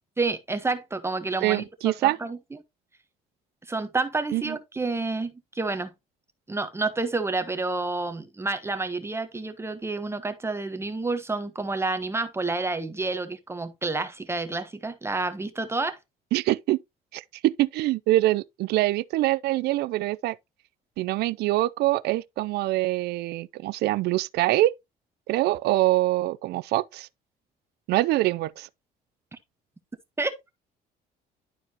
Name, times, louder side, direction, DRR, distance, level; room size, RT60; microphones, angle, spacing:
voice 1, 0.2-1.7 2.0-2.4 3.7-5.9 6.5-16.0 30.2-30.4, right 3 dB, 15° right, 0.9 m, -29 dB
voice 2, 1.4-2.2 4.3-4.6 16.3-16.8 17.1-20.4 21.0-24.7 25.3-27.1 27.9-28.7, right 17 dB, 75° right, 0.4 m, -24 dB
11.5 x 4.6 x 2.8 m
cardioid pair, 110°, 17 cm